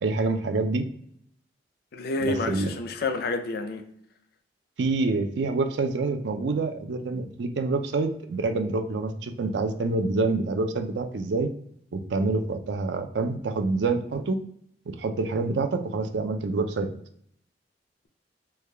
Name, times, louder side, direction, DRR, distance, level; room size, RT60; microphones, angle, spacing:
voice 1, 0.0-0.9 2.2-2.7 4.8-11.5 11.9-14.4 14.9-16.9, right 3 dB, 70° right, 0.4 m, -27 dB
voice 2, 1.9-3.8, left 2 dB, 60° left, 0.4 m, -29 dB
3.3 x 2.2 x 3.3 m
head